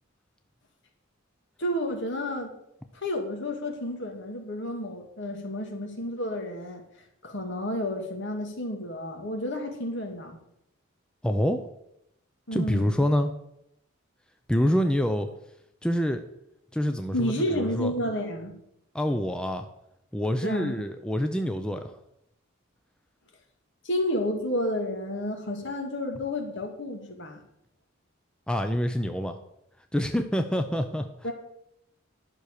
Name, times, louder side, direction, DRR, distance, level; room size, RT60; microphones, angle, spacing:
voice 1, 1.6-2.5 2.9-6.8 7.2-10.4 12.5-13.1 17.1-18.5 20.4-20.8 23.8-27.4 31.2-31.3, left 1 dB, 60° left, 3 dB, 2.2 m, -31 dB
voice 2, 11.2-11.6 12.5-13.3 14.5-15.3 15.8-16.2 16.7-17.9 18.9-19.7 20.1-21.9 28.5-29.4 29.9-31.1, equal, 5° left, 6 dB, 0.6 m, -26 dB
11.0 x 6.2 x 6.7 m, 0.79 s
head